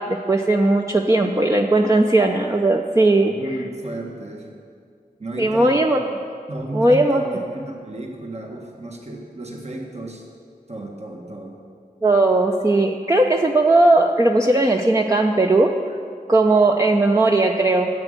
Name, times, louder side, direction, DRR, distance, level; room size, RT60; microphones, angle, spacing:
voice 1, 0.0-3.6 5.4-6.0 6.7-7.2 12.0-15.7 16.3-17.9, right 2 dB, 20° right, 1 dB, 0.7 m, -17 dB
voice 2, 3.2-4.5 5.2-5.8 6.5-10.2 10.7-11.6, right 1 dB, 45° right, 0 dB, 1.6 m, -33 dB
10.5 x 7.8 x 9.0 m, 2.2 s
wide cardioid pair, 55°, 16 cm